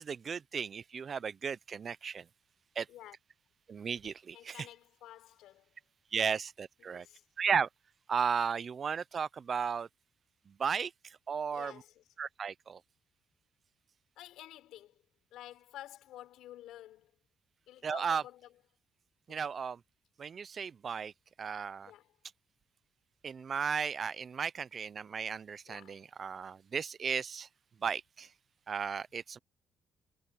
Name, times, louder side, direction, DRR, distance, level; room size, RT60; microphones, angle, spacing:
voice 1, 0.0-2.2 2.8-2.9 3.7-4.7 6.1-7.1 7.4-7.7 8.1-9.9 10.5-11.7 12.2-12.8 17.8-18.2 19.3-19.8 20.2-21.1 21.4-21.9 23.2-27.5 27.8-28.3 28.7-29.4, right 6 dB, 45° right, 0.6 m, -35 dB
voice 2, 4.3-5.8 6.8-7.2 11.5-12.1 14.2-15.0 15.3-17.1 17.7-18.6 19.3-19.5 21.8-22.1 25.7-26.0, left 13 dB, 90° left, 4.1 m, -51 dB
cardioid pair, 90°, 0 cm